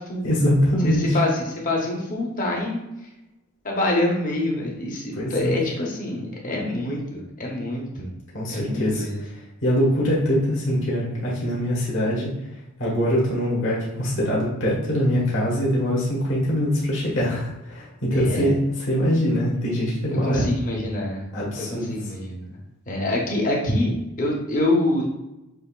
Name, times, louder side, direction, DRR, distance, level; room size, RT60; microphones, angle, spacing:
voice 1, 0.2-1.2 5.2-5.5 8.3-9.4 9.6-12.3 12.8-20.4 21.3-22.1, equal, 60° left, -5 dB, 1.4 m, -23 dB
voice 2, 0.8-2.8 3.6-8.1 8.5-9.2 18.1-18.5 20.1-21.2 21.6-22.5 22.9-25.1, left 1 dB, 40° left, -2 dB, 1.0 m, -26 dB
6.4 x 3.1 x 2.4 m, 0.93 s
head